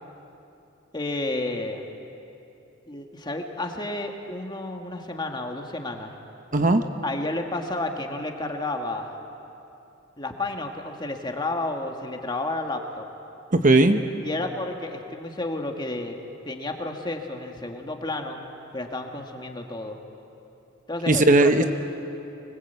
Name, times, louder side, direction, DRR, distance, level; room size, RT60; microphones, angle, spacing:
voice 1, 0.9-1.8 2.9-6.1 7.0-9.1 10.2-13.1 14.2-16.2 16.5-18.4 18.7-20.0 20.9-21.7, left 2 dB, 20° left, 3 dB, 1.8 m, -31 dB
voice 2, 6.5-6.8 13.5-14.0 21.1-21.6, right 2 dB, 40° right, 8 dB, 0.9 m, -17 dB
25.0 x 20.5 x 8.2 m, 2.8 s
head